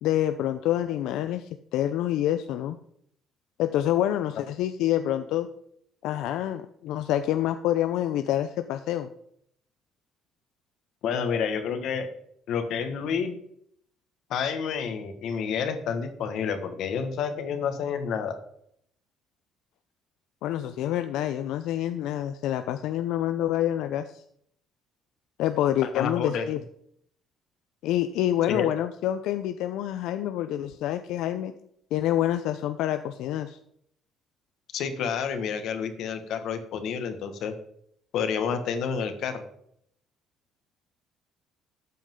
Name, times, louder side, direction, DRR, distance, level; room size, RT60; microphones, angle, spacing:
voice 1, 0.0-2.8 3.6-5.5 6.0-9.1 20.4-24.2 25.4-26.6 27.8-31.5 31.9-33.6, left 12 dB, 75° left, 9 dB, 0.6 m, -27 dB
voice 2, 11.0-12.1 12.5-13.3 14.3-18.4 25.9-26.5 28.5-28.7 34.7-37.5 38.1-39.4, left 6 dB, 60° left, 8 dB, 1.6 m, -29 dB
13.5 x 8.5 x 3.8 m, 0.69 s
cardioid pair, 155°, 0 cm